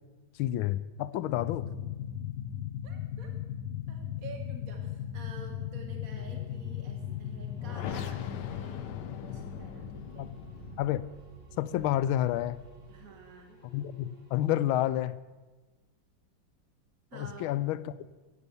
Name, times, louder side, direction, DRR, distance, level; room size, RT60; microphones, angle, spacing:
voice 1, 0.4-1.7 10.2-10.3 10.8-11.0 11.6-12.6 13.7-15.2 17.1-17.9, left 13 dB, 90° left, 16 dB, 1.4 m, -29 dB
sound 1, 1.3-11.0, left 10 dB, 70° left, 1.2 m, -37 dB
voice 2, 2.8-3.3 3.9-10.3 12.9-13.6 17.1-17.6, right 3 dB, 45° right, 2 dB, 1.6 m, -49 dB
sound 2, 6.0-14.8, right 3 dB, 65° right, 4.2 m, -53 dB
16.0 x 8.5 x 6.9 m, 1.2 s
omnidirectional pair, 2.2 m